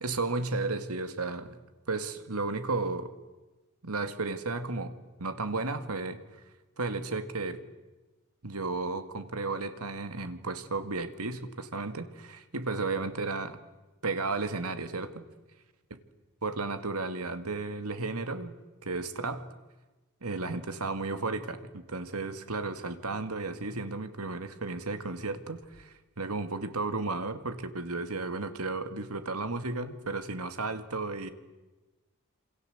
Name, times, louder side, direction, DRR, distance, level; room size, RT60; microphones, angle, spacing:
voice 1, 0.0-1.6 1.9-3.1 3.8-4.9 5.2-6.2 6.8-7.6 8.4-13.6 14.0-15.2 16.4-18.5 18.8-19.5 20.2-31.3, right 3 dB, 85° right, 10 dB, 2.2 m, -33 dB
28.0 x 26.5 x 8.0 m, 1.1 s
head